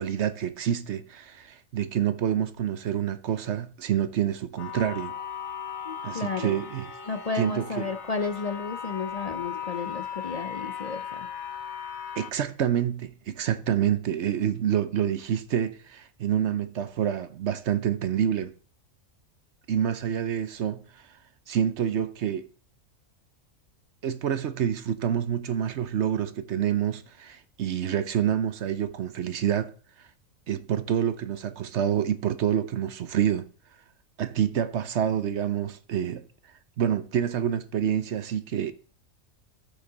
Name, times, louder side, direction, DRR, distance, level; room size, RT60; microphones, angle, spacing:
voice 1, 0.0-5.1 6.0-6.9 7.3-7.9 12.2-18.5 19.7-21.0 21.5-22.5 24.0-29.7 30.5-33.5 34.2-36.3 36.8-38.7, right 9 dB, 60° right, 1.0 m, -27 dB
sound 1, 4.6-12.3, left 7 dB, 85° left, 1.6 m, -37 dB
voice 2, 5.8-6.6 7.1-11.3, left 4 dB, 45° left, 0.5 m, -32 dB
13.5 x 6.7 x 3.9 m
omnidirectional pair, 1.4 m